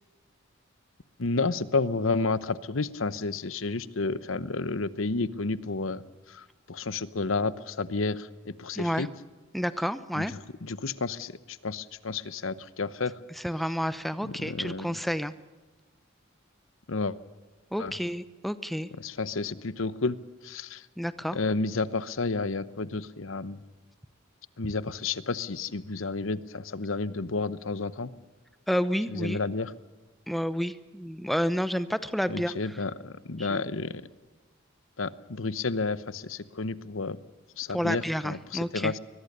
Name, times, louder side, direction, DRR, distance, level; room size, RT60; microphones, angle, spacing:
voice 1, 1.2-6.0 6.3-9.1 10.1-13.1 14.2-15.0 16.9-17.2 17.8-18.0 19.0-20.2 20.4-20.9 21.3-23.6 24.6-28.1 29.1-29.7 32.3-34.0 35.0-37.2 37.6-39.0, left 3 dB, 75° left, 16 dB, 1.0 m, -31 dB
voice 2, 8.8-9.1 9.5-10.3 13.4-15.3 17.7-18.9 21.0-21.4 28.7-29.4 30.3-32.5 33.5-33.6 37.7-38.9, equal, ahead, 13 dB, 0.8 m, -30 dB
23.0 x 21.0 x 6.8 m, 1.3 s
head